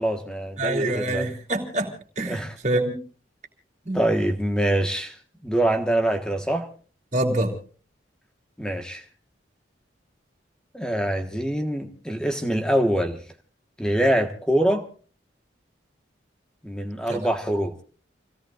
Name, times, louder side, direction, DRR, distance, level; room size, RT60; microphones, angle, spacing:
voice 1, 0.0-1.3 2.3-2.6 3.9-5.1 5.4-6.7 8.6-9.0 10.7-13.2 13.8-14.8 16.6-17.7, right 1 dB, 5° left, 5 dB, 1.4 m, -24 dB
voice 2, 0.6-2.9 3.8-4.0 7.1-7.5 17.1-17.2, right 1 dB, 40° right, 2 dB, 3.0 m, -26 dB
29.0 x 17.5 x 2.5 m, 0.39 s
head